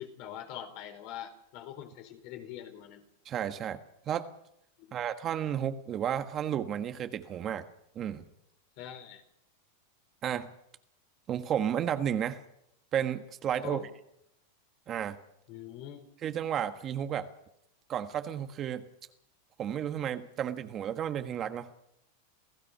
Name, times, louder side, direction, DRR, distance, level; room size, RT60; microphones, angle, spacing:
voice 1, 0.0-3.0 4.8-5.0 8.8-9.2 13.6-13.9 15.5-16.1, left 10 dB, 50° left, 6 dB, 4.1 m, -43 dB
voice 2, 3.2-3.8 4.1-4.3 4.9-7.6 7.9-8.2 10.2-10.5 11.3-12.4 12.9-13.8 14.9-15.2 16.2-17.3 17.9-18.8 19.6-21.7, right 9 dB, 30° right, 8 dB, 1.4 m, -32 dB
28.0 x 16.5 x 5.7 m, 0.79 s
supercardioid pair, 140°, 0 cm